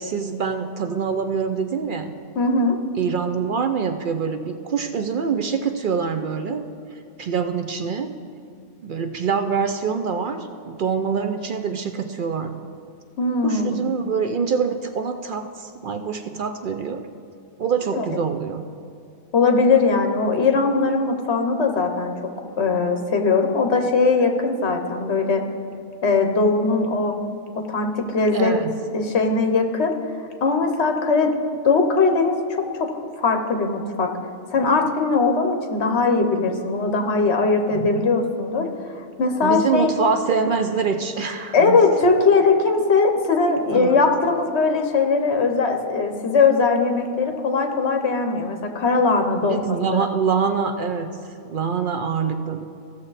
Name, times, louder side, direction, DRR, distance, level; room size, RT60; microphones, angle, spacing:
voice 1, 0.0-2.1 3.0-6.6 7.2-8.1 8.8-12.6 13.4-17.1 17.6-18.6 28.3-28.8 37.7-38.1 39.4-41.8 43.7-44.1 49.4-52.7, right 6 dB, 60° right, 7 dB, 0.6 m, -25 dB
voice 2, 2.4-2.8 13.2-13.9 17.9-18.1 19.3-22.1 22.6-25.4 26.0-27.1 27.7-28.5 28.9-29.9 30.4-31.3 31.6-34.1 34.5-38.7 38.9-39.9 41.5-49.6 49.9-50.1, left 4 dB, 65° left, 5 dB, 1.2 m, -20 dB
16.0 x 6.7 x 4.1 m, 2.5 s
omnidirectional pair, 1.2 m